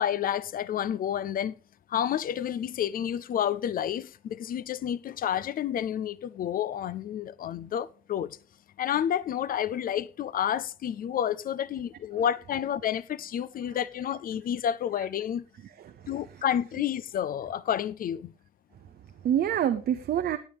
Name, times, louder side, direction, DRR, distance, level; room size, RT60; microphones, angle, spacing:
voice 1, 0.0-1.5 1.9-8.4 8.8-15.4 16.1-18.3, left 10 dB, 50° left, 0.4 m, -30 dB
voice 2, 15.6-16.4 18.8-20.4, right 10 dB, 55° right, 0.7 m, -29 dB
17.0 x 8.8 x 3.4 m
cardioid pair, 145°, 18 cm